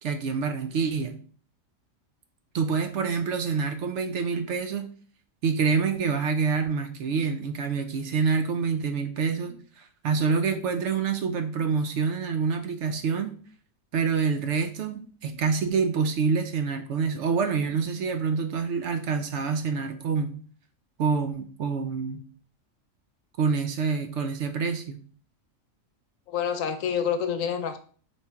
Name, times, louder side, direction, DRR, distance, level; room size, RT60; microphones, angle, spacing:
voice 1, 0.0-1.2 2.5-4.9 5.4-13.4 13.9-20.4 21.0-22.2 23.4-25.0, right 5 dB, 65° right, 7 dB, 0.8 m, -27 dB
voice 2, 26.3-27.8, left 7 dB, 75° left, 8 dB, 1.0 m, -27 dB
4.2 x 3.1 x 3.4 m, 0.44 s
omnidirectional pair, 1.4 m